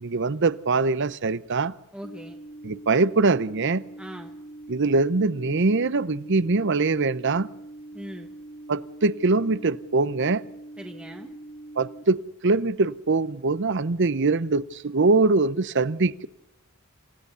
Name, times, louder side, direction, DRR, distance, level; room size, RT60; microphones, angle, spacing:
voice 1, 0.0-1.7 2.6-3.8 4.7-7.5 8.7-10.4 11.8-16.3, right 3 dB, 55° right, 0.8 m, -23 dB
voice 2, 1.9-2.4 4.0-4.3 7.9-8.3 10.8-11.4, equal, 5° right, 1.4 m, -40 dB
sound 1, 2.0-12.0, right 1 dB, 40° left, 1.0 m, -43 dB
28.0 x 16.5 x 6.9 m
head